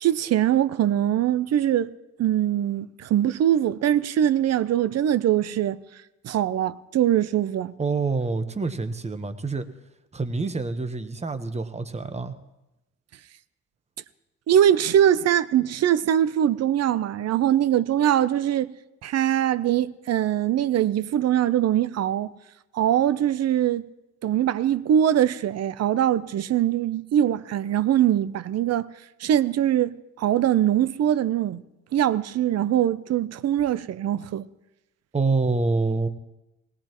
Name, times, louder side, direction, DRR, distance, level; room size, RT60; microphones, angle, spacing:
voice 1, 0.0-1.9 2.2-5.8 6.2-7.7 14.5-18.7 19.0-22.3 22.7-23.9 24.2-28.9 29.2-31.6 31.9-34.5, right 11 dB, 55° right, 0.6 m, -22 dB
voice 2, 7.8-9.7 10.1-12.3 35.1-36.1, right 3 dB, 20° right, 1.1 m, -26 dB
20.0 x 17.5 x 3.0 m
cardioid pair, 90°, 30 cm